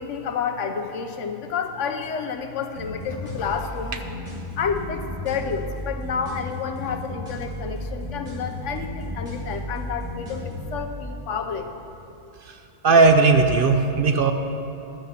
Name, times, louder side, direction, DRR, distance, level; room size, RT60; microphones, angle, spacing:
voice 1, 0.0-4.0 4.6-11.8, left 6 dB, 85° left, 6 dB, 1.1 m, -30 dB
sound 1, 2.8-10.8, left 1 dB, 75° right, 3.1 m, -34 dB
voice 2, 12.8-14.3, right 4 dB, 55° right, 6 dB, 0.7 m, -17 dB
11.5 x 8.0 x 5.7 m, 3.0 s
omnidirectional pair, 1.2 m